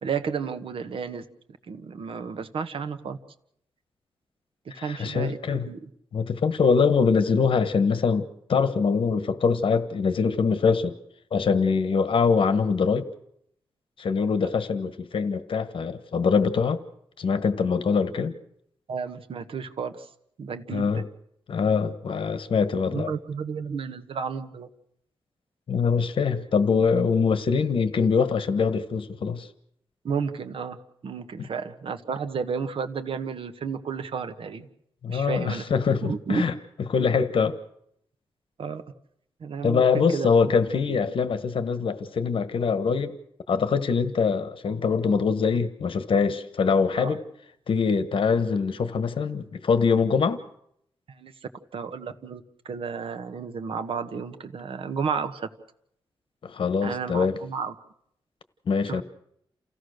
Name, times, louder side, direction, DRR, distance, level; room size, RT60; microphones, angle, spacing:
voice 1, 0.0-1.3 1.7-3.2 4.8-5.4 5.7-5.9 18.9-20.1 20.4-21.0 22.9-24.7 30.0-30.8 31.0-34.7 35.1-35.6 36.0-36.4 38.6-38.8 39.4-40.3 47.0-47.2 51.2-51.3 51.7-55.5 56.8-57.7 58.9-59.0, right 6 dB, 70° right, 1.4 m, -32 dB
voice 2, 4.8-5.7 6.1-10.9 11.3-13.1 14.0-16.8 17.2-18.3 20.7-21.0 21.5-23.1 25.7-29.5 31.4-31.5 35.0-36.5 36.9-37.6 39.6-43.1 43.5-47.2 47.7-50.4 56.4-57.4 58.7-59.0, left 5 dB, 65° left, 1.3 m, -23 dB
29.0 x 16.0 x 6.6 m
wide cardioid pair, 120°, 10 cm